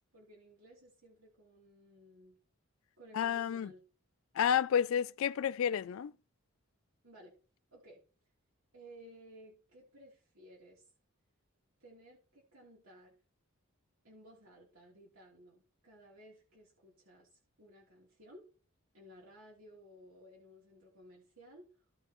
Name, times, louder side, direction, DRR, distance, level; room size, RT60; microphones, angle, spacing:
voice 1, 0.1-2.4 3.0-3.8 7.0-7.4 7.7-8.0 8.7-10.9 11.8-13.1 14.0-18.4 18.9-21.7, equal, 75° right, 3.2 m, -57 dB
voice 2, 3.1-3.7 4.4-6.1, left 8 dB, 70° left, 0.3 m, -30 dB
16.0 x 5.3 x 3.0 m
head